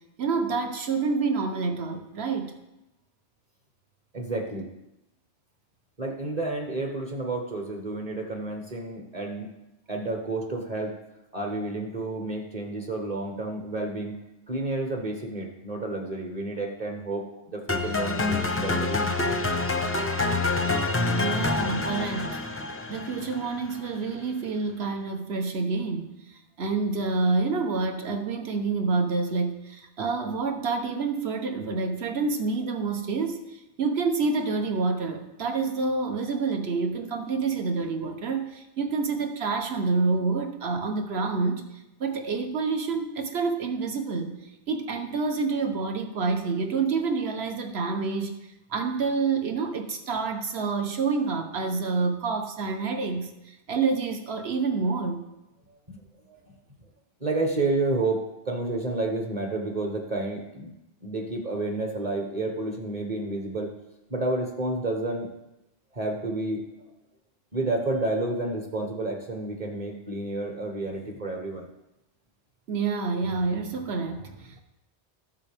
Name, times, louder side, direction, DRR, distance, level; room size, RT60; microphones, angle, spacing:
voice 1, 0.2-2.5 21.1-22.4 22.9-41.6 42.0-44.4 44.7-48.3 48.7-55.2 72.7-74.6, right 4 dB, 65° right, 5 dB, 1.3 m, -28 dB
voice 2, 4.1-4.7 6.0-9.5 9.9-10.9 11.3-14.1 14.5-19.1 55.7-55.8 56.3-56.5 57.2-60.7 61.0-63.7 64.1-65.3 65.9-66.7 67.5-71.7, right 2 dB, 35° right, 2 dB, 1.2 m, -30 dB
sound 1, 17.7-23.8, left 3 dB, 15° left, 0.5 m, -27 dB
14.0 x 7.4 x 3.5 m, 0.91 s
omnidirectional pair, 1.2 m